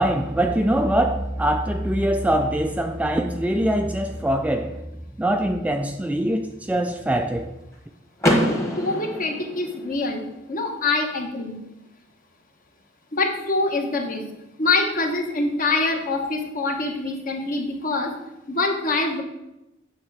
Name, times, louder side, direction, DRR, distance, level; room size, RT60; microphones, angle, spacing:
voice 1, 0.0-4.8 5.2-7.5, right 1 dB, 5° right, 6 dB, 0.3 m, -23 dB
Car / Door, 8.2-10.1, equal, 15° left, 1.2 m, -24 dB
voice 2, 8.8-10.2 10.5-11.6 13.1-14.2 14.6-18.1 18.5-19.2, left 3 dB, 45° left, 3 dB, 1.1 m, -24 dB
8.6 x 3.3 x 6.1 m, 0.92 s
head